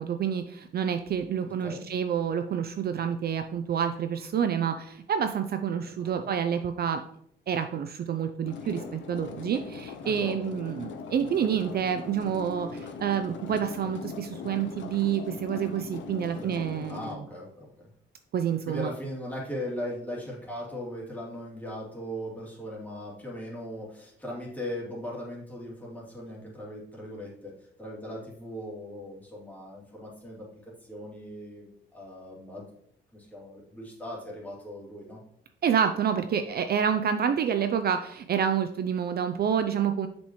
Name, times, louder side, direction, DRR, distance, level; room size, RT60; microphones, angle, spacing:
voice 1, 0.0-7.0 7.5-17.3 18.3-18.9 35.6-40.1, right 8 dB, 50° right, 8 dB, 0.5 m, -28 dB
voice 2, 1.4-1.8 6.0-6.3 10.0-10.5 16.3-17.9 18.7-27.5 27.8-32.6 33.1-35.2, equal, 10° left, -5 dB, 2.8 m, -39 dB
sound 1, 8.4-17.1, left 5 dB, 70° left, 0.7 m, -40 dB
6.7 x 5.2 x 3.1 m, 0.67 s
cardioid pair, 90°, 20 cm